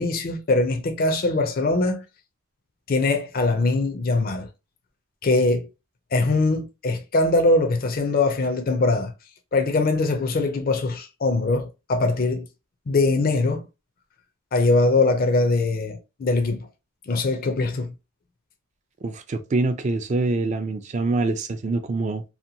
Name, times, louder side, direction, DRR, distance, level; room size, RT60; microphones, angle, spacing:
voice 1, 0.0-2.0 2.9-4.5 5.2-5.7 6.1-9.1 9.5-12.5 12.9-13.6 14.5-16.7 17.1-17.9, left 2 dB, 45° left, 0.4 m, -22 dB
voice 2, 19.0-22.2, right 3 dB, 35° right, 0.3 m, -25 dB
2.8 x 2.1 x 2.6 m
head